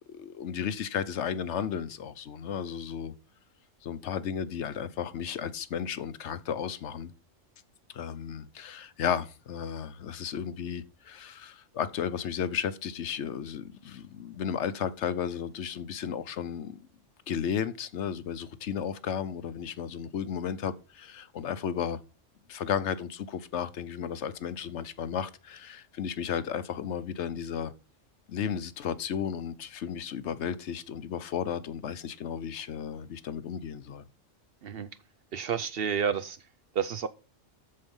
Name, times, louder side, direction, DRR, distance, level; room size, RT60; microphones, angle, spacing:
voice 1, 0.1-3.1 3.8-7.1 7.9-16.8 17.3-22.0 22.5-27.7 28.3-34.0, left 8 dB, 65° left, 1.0 m, -34 dB
voice 2, 35.3-36.4 36.7-37.1, right 7 dB, 60° right, 0.7 m, -30 dB
13.5 x 4.6 x 5.4 m
omnidirectional pair, 1.3 m